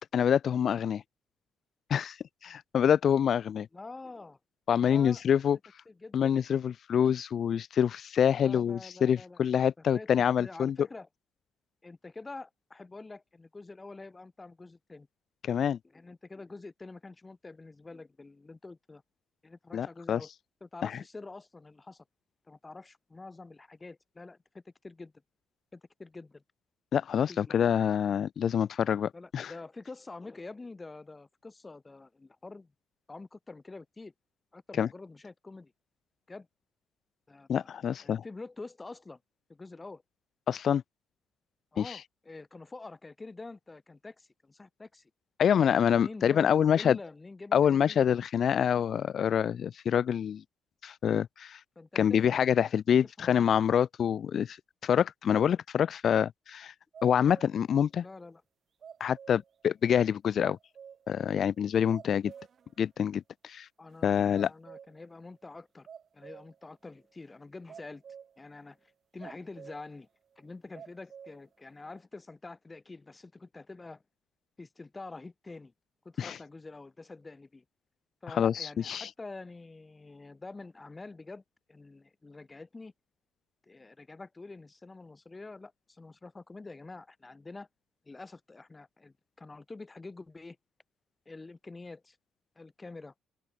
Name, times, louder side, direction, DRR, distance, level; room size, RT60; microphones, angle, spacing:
voice 1, 0.1-1.0 1.9-2.2 2.4-3.7 4.7-5.6 6.1-10.8 15.4-15.8 19.7-20.2 20.8-20.9 26.9-29.5 34.8-34.9 37.5-38.2 40.5-40.8 41.8-42.0 45.4-47.0 47.5-50.4 50.8-51.6 51.9-54.6 54.8-56.7 57.0-58.0 59.0-60.6 61.1-62.3 62.8-63.7 64.0-64.5 76.2-76.4 78.3-79.1, left 8 dB, 40° left, 0.7 m, -26 dB
voice 2, 3.7-4.4 4.9-5.2 5.9-6.3 8.4-9.4 9.8-11.1 11.8-15.1 15.9-19.0 19.4-20.3 20.6-22.0 22.5-25.1 25.7-26.4 27.3-27.6 29.1-32.7 33.1-34.1 34.5-35.7 36.3-36.5 37.3-39.2 39.5-40.0 41.7-45.1 45.9-48.0 51.8-52.4 53.2-53.5 58.0-58.4 63.8-65.9 66.1-68.0 68.4-70.1 70.4-74.0 74.6-75.7 76.0-77.6 78.2-81.4 81.7-82.9 83.6-87.7 88.1-90.6 91.3-92.2 92.6-93.1, left 3 dB, 15° left, 7.3 m, -46 dB
sound 1, 56.9-57.7 58.0-58.1 58.8-59.6 60.0-60.1 60.4-61.2 61.5-61.6 61.9-62.7 63.1-63.2 63.9-64.0 64.3-65.1 65.9-66.6 67.7-68.4 69.2-69.9 70.3-70.4 70.7-71.4 71.9-72.0, right 7 dB, 35° right, 4.2 m, -50 dB
open air
cardioid pair, 175°, 0 cm